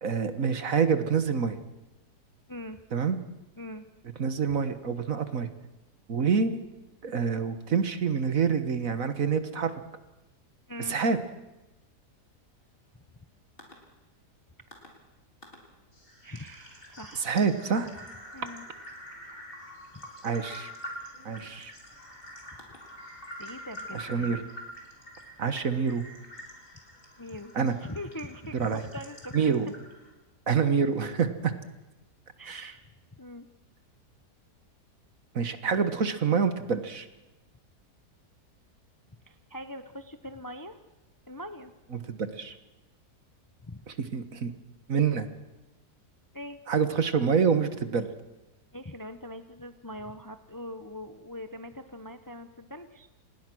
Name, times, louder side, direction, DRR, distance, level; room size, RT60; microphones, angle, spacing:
voice 1, 0.0-1.6 2.9-3.2 4.2-5.5 6.1-6.6 7.0-9.7 10.9-11.2 17.2-17.9 20.2-20.7 21.3-21.7 23.9-24.4 25.4-26.0 27.6-27.8 28.5-28.8 29.3-29.7 30.5-31.5 32.5-32.6 35.4-37.1 41.9-42.6 44.1-44.5 44.9-45.3 46.7-48.1, right 6 dB, 55° right, 10 dB, 1.7 m, -26 dB
voice 2, 2.5-2.8 3.6-3.9 10.7-11.0 16.2-17.4 18.3-18.7 19.9-20.0 23.4-24.4 27.2-27.5 27.8-29.5 32.4-32.8 33.2-33.5 39.3-40.8 41.3-41.7 43.6-43.8 46.3-46.6 48.7-53.1, left 1 dB, 15° left, 9 dB, 0.8 m, -42 dB
sound 1, 13.6-13.7 14.7-14.9 15.4-15.6 15.9-30.1, equal, 30° left, 4.3 m, -46 dB
27.5 x 20.0 x 6.3 m, 1.0 s
omnidirectional pair, 1.8 m